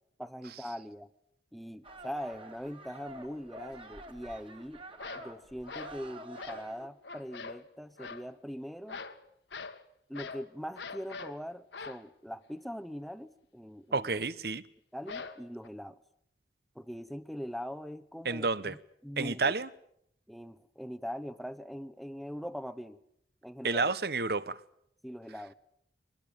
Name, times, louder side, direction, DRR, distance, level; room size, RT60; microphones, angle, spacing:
voice 1, 0.2-1.1 1.5-4.8 5.1-9.0 10.1-14.1 14.9-16.0 16.7-18.8 19.0-19.5 20.3-23.0 23.4-23.9 25.0-25.5, equal, ahead, 0.9 m, -42 dB
sound 1, 1.8-6.9, right 1 dB, 30° right, 2.4 m, -49 dB
sound 2, 5.0-5.3 5.7-6.0 6.4-6.7 7.0-7.6 8.0-8.3 8.9-9.2 9.5-9.8 10.1-10.5 10.8-11.4 11.7-12.0 15.1-15.7, left 4 dB, 75° left, 1.7 m, -43 dB
voice 2, 13.9-14.6 18.2-18.7 19.2-19.7 23.6-24.6, right 3 dB, 55° right, 1.0 m, -30 dB
23.0 x 20.0 x 8.8 m
head